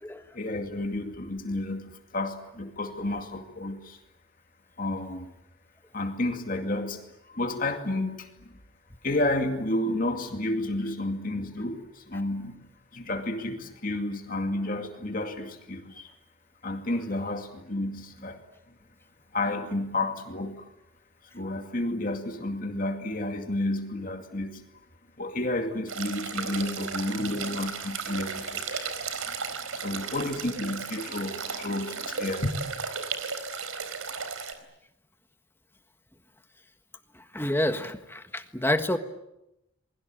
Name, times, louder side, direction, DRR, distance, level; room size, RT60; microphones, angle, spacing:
voice 1, 0.3-4.0 4.8-5.3 5.9-8.3 9.0-12.7 12.9-16.1 16.6-18.4 19.3-20.6 21.3-24.6 25.2-28.9 29.3-29.4 29.7-32.5, left 1 dB, 40° left, 5 dB, 2.3 m, -31 dB
sound 1, 25.9-34.5, right 5 dB, 85° right, 4.1 m, -35 dB
voice 2, 37.3-39.0, left 1 dB, 10° left, 8 dB, 1.5 m, -28 dB
28.5 x 22.0 x 9.1 m, 0.87 s
head